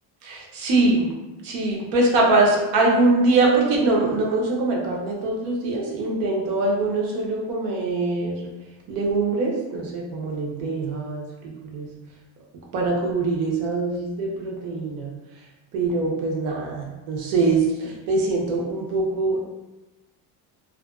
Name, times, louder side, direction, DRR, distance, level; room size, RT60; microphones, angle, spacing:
voice 1, 0.2-1.1 1.4-8.5 8.9-11.9 12.7-15.1 15.7-19.4, right 2 dB, 90° right, -2 dB, 0.8 m, -23 dB
2.5 x 2.2 x 2.3 m, 1.1 s
cardioid pair, 175°, 46 cm